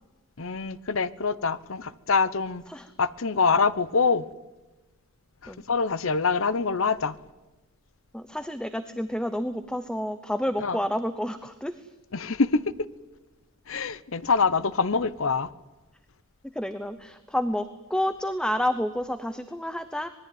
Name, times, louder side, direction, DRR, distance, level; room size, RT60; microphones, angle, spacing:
voice 1, 0.4-2.6 3.0-4.3 5.4-7.1 10.6-10.8 12.1-12.6 13.7-15.5, left 4 dB, 65° left, 0.9 m, -25 dB
voice 2, 8.1-11.9 16.5-20.1, left 1 dB, 5° left, 0.8 m, -29 dB
26.0 x 20.5 x 9.4 m
head